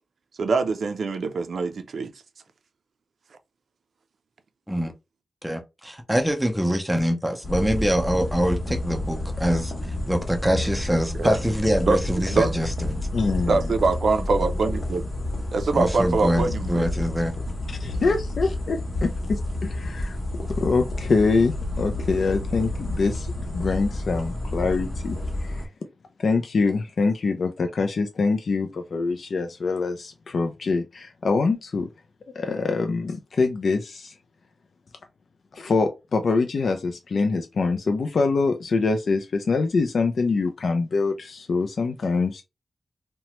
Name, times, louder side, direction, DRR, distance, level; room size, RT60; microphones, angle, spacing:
voice 1, 0.4-2.1 11.2-11.4 11.9-12.5 13.5-15.0 15.5-16.9, right 3 dB, 80° right, 0.4 m, -24 dB
voice 2, 5.4-13.0 15.7-17.4, equal, 5° right, 0.5 m, -24 dB
sound 1, 7.4-25.7, left 1 dB, 45° left, 0.8 m, -30 dB
voice 3, 13.1-13.6 17.7-20.2 20.5-25.6 26.2-31.9 32.4-34.1 35.5-42.4, left 4 dB, 65° left, 0.3 m, -24 dB
2.8 x 2.1 x 2.9 m
wide cardioid pair, 145°, 0 cm